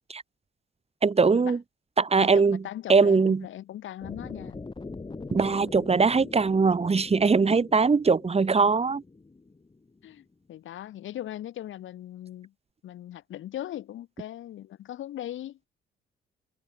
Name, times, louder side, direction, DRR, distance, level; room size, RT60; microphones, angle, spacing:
voice 1, 1.0-1.6 2.0-2.6 2.9-3.4 5.3-9.0, right 4 dB, 30° right, 3.5 m, -21 dB
voice 2, 2.2-4.6 10.0-12.5 12.8-15.6, left 12 dB, 75° left, 6.7 m, -39 dB
sound 1, 4.0-10.1, left 3 dB, 25° left, 7.0 m, -42 dB
cardioid pair, 90°, 20 cm